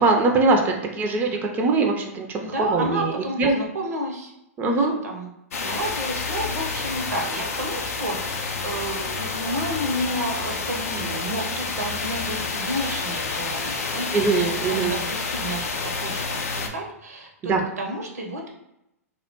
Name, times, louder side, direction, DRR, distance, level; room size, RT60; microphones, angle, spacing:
voice 1, 0.0-3.1 3.4-3.5 4.6-4.9 14.1-15.0 17.5-17.6, right 3 dB, 20° right, 2 dB, 0.4 m, -22 dB
voice 2, 2.4-4.3 4.8-5.3 5.6-15.7 16.0-18.5, right 1 dB, 80° right, 1 dB, 0.6 m, -31 dB
sound 1, 5.5-16.7, left 4 dB, 70° left, 0.4 m, -29 dB
2.4 x 2.1 x 2.8 m, 0.85 s
hypercardioid pair, 110°, 8 cm